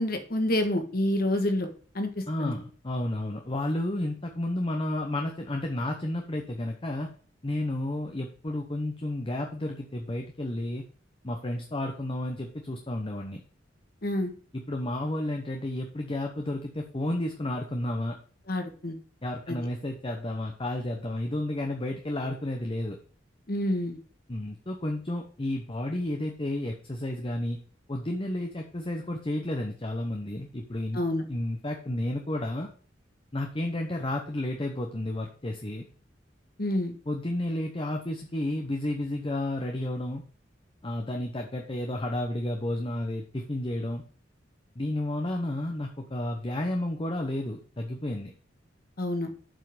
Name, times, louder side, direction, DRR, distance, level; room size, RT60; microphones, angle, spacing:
voice 1, 0.0-1.7 1.9-2.6 14.0-14.3 18.5-19.0 19.5-19.6 23.5-24.0 30.9-31.2 36.6-36.9 49.0-49.3, left 1 dB, 55° left, 6 dB, 1.6 m, -28 dB
voice 2, 2.3-7.1 7.4-10.8 11.2-13.4 14.5-18.1 19.2-23.0 24.3-27.6 27.9-31.0 31.3-32.7 33.3-35.8 37.1-40.2 40.8-44.0 44.7-48.3, left 1 dB, 30° left, 3 dB, 0.9 m, -31 dB
7.6 x 5.6 x 5.0 m, 0.42 s
head